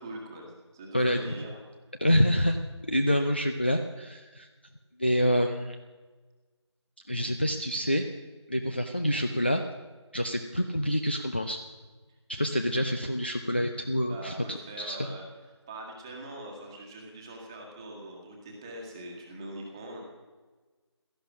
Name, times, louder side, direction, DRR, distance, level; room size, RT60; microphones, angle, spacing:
voice 1, 0.0-1.6 12.5-12.7 14.1-20.1, right 1 dB, 10° right, 0 dB, 1.6 m, -43 dB
voice 2, 0.9-1.3 2.0-2.6 2.9-4.5 5.0-5.8 7.1-8.1 8.5-9.6 10.1-11.6 12.3-15.0, equal, 20° left, 6 dB, 0.5 m, -27 dB
17.0 x 14.0 x 6.1 m, 1.3 s
figure-of-eight pair, 165°, 15 cm